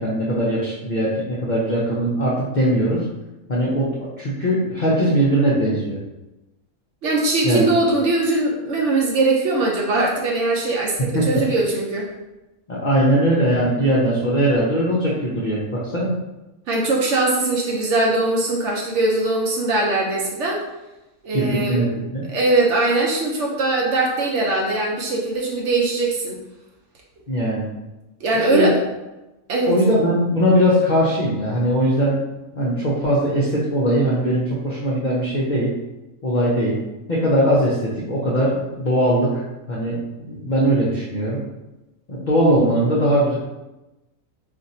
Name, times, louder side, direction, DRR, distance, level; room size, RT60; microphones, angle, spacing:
voice 1, 0.0-3.0 3.5-3.9 4.2-6.0 7.4-7.7 11.1-11.4 12.7-16.1 21.3-22.2 27.3-27.6 28.5-28.7 29.7-32.2 32.5-35.7 36.2-36.8 37.1-39.4 39.7-41.4 42.1-43.4, equal, 60° left, -6 dB, 0.5 m, -20 dB
voice 2, 7.0-12.1 16.7-20.6 21.2-21.8 22.3-26.4 28.2-28.8 29.5-29.7, right 2 dB, 65° right, -2 dB, 0.8 m, -21 dB
2.5 x 2.5 x 4.1 m, 1.0 s
omnidirectional pair, 1.5 m